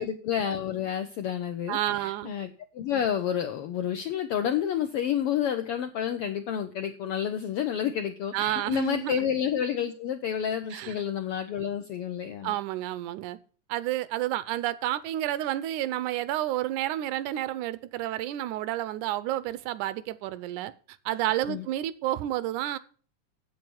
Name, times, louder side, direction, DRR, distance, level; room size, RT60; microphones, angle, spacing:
voice 1, 0.0-12.5 21.5-21.6, left 9 dB, 80° left, 1.3 m, -30 dB
voice 2, 1.7-2.3 8.3-9.1 10.7-11.0 12.4-13.4 13.7-20.7 21.1-22.8, right 14 dB, 85° right, 2.1 m, -30 dB
8.3 x 7.7 x 6.9 m
omnidirectional pair, 3.5 m